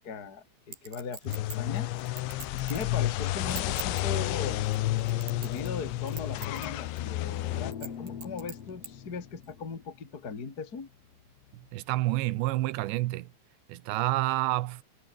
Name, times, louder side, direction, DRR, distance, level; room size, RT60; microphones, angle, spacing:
voice 1, 0.0-1.9 2.5-4.7 5.3-10.9, left 5 dB, 25° left, 2.5 m, -39 dB
Chink clink, 0.7-2.9 3.4-4.0 4.7-5.8 6.1-6.7 7.0-7.1 7.7-8.9 9.4-9.5, right 7 dB, 60° right, 5.8 m, -42 dB
sound 1, 1.3-7.7, left 16 dB, 90° left, 3.5 m, -31 dB
sound 2, 1.9-2.4 3.2-11.8, left 7 dB, 45° left, 2.7 m, -45 dB
voice 2, 11.5-13.3 13.7-14.8, right 18 dB, 85° right, 3.1 m, -29 dB
omnidirectional pair, 5.1 m